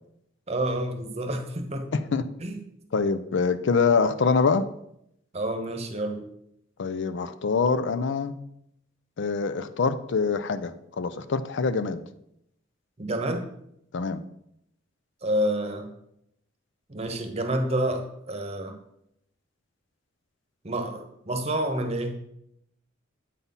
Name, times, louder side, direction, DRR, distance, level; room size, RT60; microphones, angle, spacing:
voice 1, 0.5-1.9 2.4-2.6 5.3-6.2 13.0-13.5 15.2-15.9 16.9-18.8 20.6-22.2, right 1 dB, 35° right, 5 dB, 1.0 m, -28 dB
voice 2, 1.9-2.2 2.9-4.7 6.8-8.3 9.2-12.0 13.9-14.2, left 4 dB, 65° left, 12 dB, 0.5 m, -25 dB
8.3 x 4.1 x 5.4 m, 0.76 s
head